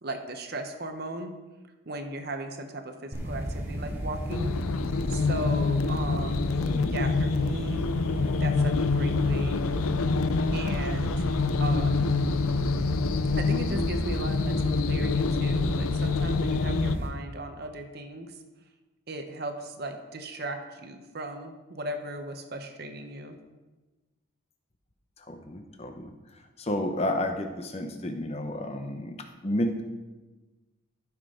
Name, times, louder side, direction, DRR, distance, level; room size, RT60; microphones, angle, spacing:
voice 1, 0.0-1.3 1.9-4.5 5.1-6.5 6.8-7.9 8.4-9.6 10.5-11.3 11.6-12.2 13.4-18.3 19.1-23.4, right 1 dB, 50° right, 5 dB, 0.9 m, -37 dB
sound 1, 3.1-17.1, equal, 10° right, 1.4 m, -32 dB
sound 2, 4.3-17.0, left 4 dB, 85° left, 0.5 m, -27 dB
voice 2, 6.6-7.0 25.2-29.8, left 1 dB, 30° left, 6 dB, 0.8 m, -32 dB
15.0 x 6.1 x 3.8 m, 1.2 s
head